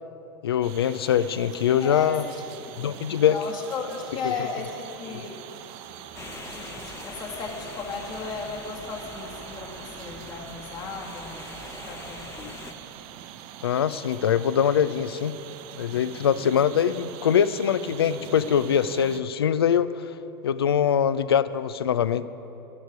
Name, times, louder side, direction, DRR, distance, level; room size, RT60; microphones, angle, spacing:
voice 1, 0.4-2.2 2.8-3.4 5.1-5.2 13.6-15.3 15.7-20.1 20.4-22.3, left 8 dB, 75° left, 16 dB, 0.4 m, -23 dB
sound 1, 0.6-19.2, right 11 dB, 50° right, 0.7 m, -43 dB
voice 2, 1.8-2.7 3.3-5.4 6.5-12.7, left 4 dB, 35° left, 0 dB, 2.1 m, -35 dB
sound 2, 6.1-12.7, left 3 dB, 20° left, 1.0 m, -43 dB
11.5 x 6.8 x 9.3 m, 2.9 s
figure-of-eight pair, 90°, 13 cm